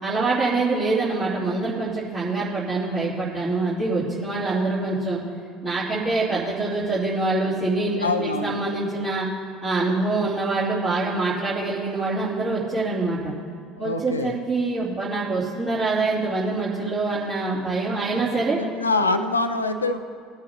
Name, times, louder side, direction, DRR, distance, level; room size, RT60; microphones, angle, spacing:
voice 1, 0.0-5.2 5.6-9.2 9.6-13.3 13.8-18.6, right 3 dB, 40° right, -11 dB, 3.0 m, -25 dB
voice 2, 8.0-8.6 13.8-14.4 18.6-20.0, left 3 dB, 85° left, 9 dB, 0.5 m, -24 dB
20.5 x 8.8 x 2.9 m, 2.2 s
figure-of-eight pair, 65°, 0 cm